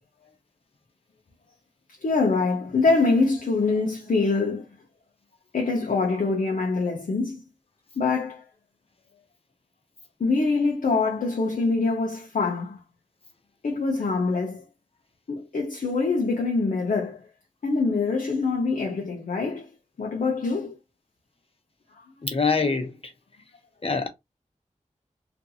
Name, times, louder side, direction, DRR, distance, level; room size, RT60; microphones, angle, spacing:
voice 1, 2.0-4.7 5.5-7.4 8.0-8.5 10.2-12.8 13.6-14.7 15.3-17.2 17.6-19.7 20.0-20.8 22.0-22.1, left 3 dB, 80° left, 0.6 m, -24 dB
voice 2, 22.2-23.0 23.8-24.1, left 4 dB, 45° left, 0.8 m, -24 dB
2.5 x 2.3 x 2.7 m
cardioid pair, 45°, 14 cm